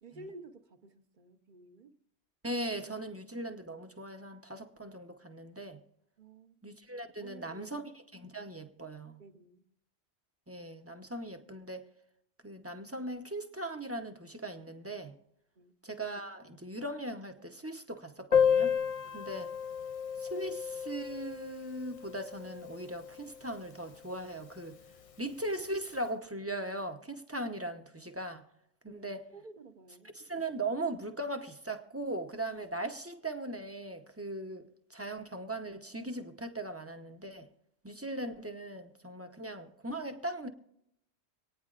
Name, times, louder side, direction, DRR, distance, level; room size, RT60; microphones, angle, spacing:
voice 1, 0.0-1.9 6.2-6.6 7.2-7.8 9.2-9.6 15.6-15.8 19.0-19.3 28.9-30.1, right 2 dB, 50° right, 1.0 m, -52 dB
voice 2, 2.4-5.8 6.6-9.2 10.5-11.9 12.4-15.1 15.8-18.8 19.1-19.5 20.2-24.8 25.2-28.5 28.8-29.2 30.1-37.5 37.8-40.5, right 1 dB, 15° right, 0.7 m, -39 dB
Piano, 18.3-23.7 23.9-24.0 24.2-24.4 24.7-24.8 25.6-25.8, left 7 dB, 50° left, 0.4 m, -32 dB
25.0 x 9.4 x 2.5 m
omnidirectional pair, 1.1 m